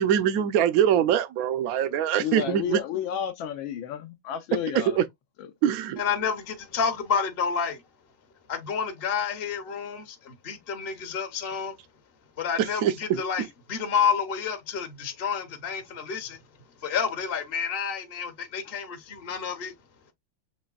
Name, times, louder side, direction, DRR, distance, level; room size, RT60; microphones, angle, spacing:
voice 1, 0.0-2.8 5.0-5.1 5.6-6.0 12.8-13.2, right 9 dB, 70° right, 0.9 m, -23 dB
voice 2, 2.2-5.0 5.4-5.5, left 9 dB, 75° left, 1.4 m, -31 dB
voice 3, 6.0-7.8 8.5-11.8 12.4-16.4 16.8-19.7, left 6 dB, 45° left, 0.8 m, -29 dB
6.9 x 3.2 x 2.3 m
omnidirectional pair, 2.3 m